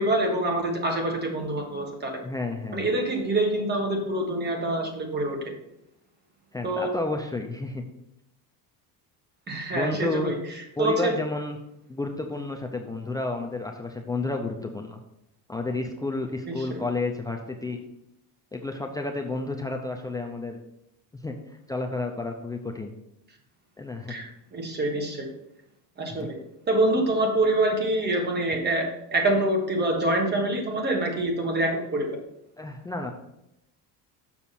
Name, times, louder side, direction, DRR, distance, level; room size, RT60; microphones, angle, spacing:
voice 1, 0.0-2.1 2.7-5.4 6.6-6.9 9.5-10.4 10.8-11.1 16.5-16.8 24.1-25.3 26.0-26.4 26.7-32.1, right 1 dB, 25° right, 2 dB, 1.5 m, -26 dB
voice 2, 2.2-2.9 6.5-7.8 9.7-10.3 10.8-11.6 11.9-15.0 15.5-17.8 18.5-20.6 21.1-22.9 23.8-24.2 26.1-26.3 32.6-33.1, left 2 dB, 10° left, 4 dB, 0.4 m, -31 dB
7.2 x 5.8 x 4.2 m, 0.83 s
cardioid pair, 145°, 41 cm